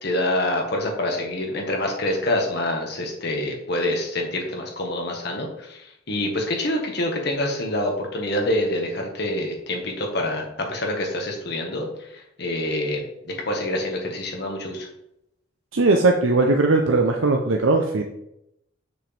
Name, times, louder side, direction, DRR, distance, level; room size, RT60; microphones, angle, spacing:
voice 1, 0.0-11.9 12.1-13.0 13.3-14.9, left 1 dB, 55° left, 1 dB, 1.6 m, -26 dB
voice 2, 15.7-18.0, right 3 dB, 75° right, 3 dB, 0.7 m, -19 dB
7.5 x 6.1 x 3.4 m, 0.82 s
head